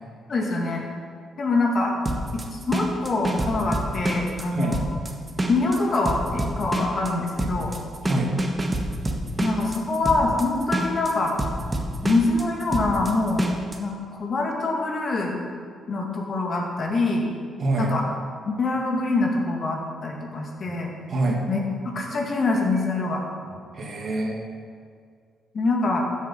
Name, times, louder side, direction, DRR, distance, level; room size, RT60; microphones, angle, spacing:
voice 1, 0.3-0.8 1.4-1.9 2.3-4.8 5.5-7.7 9.4-11.3 12.0-13.5 13.8-15.4 15.9-17.3 17.8-18.1 18.4-20.9 21.5-23.2 25.5-26.1, left 3 dB, 45° left, 0 dB, 2.3 m, -25 dB
sound 1, 2.1-13.8, right 1 dB, 20° right, 1.6 m, -27 dB
voice 2, 17.6-17.9 20.7-20.8 21.1-21.4 23.7-24.4, right 2 dB, 50° right, 0 dB, 2.2 m, -25 dB
14.5 x 7.3 x 5.6 m, 2.2 s
cardioid pair, 90°, 0 cm